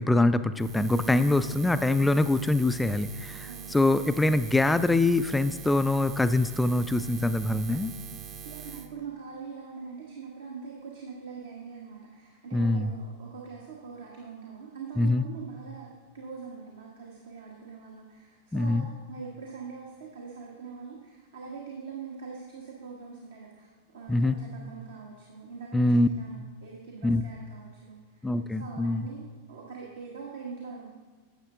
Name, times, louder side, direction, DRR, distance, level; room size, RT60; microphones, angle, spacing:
voice 1, 0.0-7.9 12.5-12.9 15.0-15.2 18.5-18.9 24.1-24.4 25.7-26.1 27.0-27.2 28.2-29.1, left 2 dB, 5° left, 12 dB, 0.3 m, -24 dB
Buzz, 0.5-8.9, right 8 dB, 30° right, 0.8 m, -42 dB
voice 2, 8.4-28.3 28.6-30.9, right 5 dB, 65° right, -2 dB, 1.2 m, -43 dB
10.5 x 7.2 x 3.6 m, 1.3 s
figure-of-eight pair, 90°, 0 cm